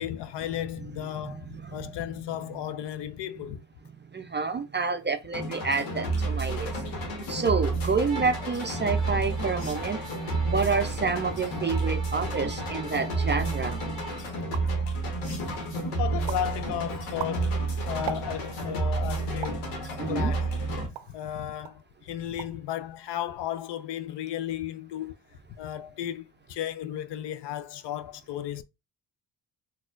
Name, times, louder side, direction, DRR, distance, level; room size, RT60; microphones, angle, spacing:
voice 1, 0.0-3.6 9.1-9.2 16.0-17.6 17.9-19.8 20.1-25.1 25.6-28.6, left 11 dB, 60° left, 0.6 m, -34 dB
voice 2, 4.1-6.8 7.3-10.3 10.5-13.8 20.0-20.3, right 4 dB, 25° right, 0.4 m, -28 dB
sound 1, 5.3-20.9, right 2 dB, 85° left, 1.2 m, -30 dB
Bowed string instrument, 8.1-14.3, right 3 dB, 35° left, 2.0 m, -44 dB
sound 2, 13.2-13.6 14.1-14.2 14.4-14.9 15.4-15.8 16.3-16.5 17.0-18.6 19.4-19.7 20.3-21.2 21.6-21.8 22.2-22.7 22.9-23.4, right 12 dB, 65° right, 0.6 m, -39 dB
4.1 x 2.4 x 2.5 m
supercardioid pair, 55°, 49 cm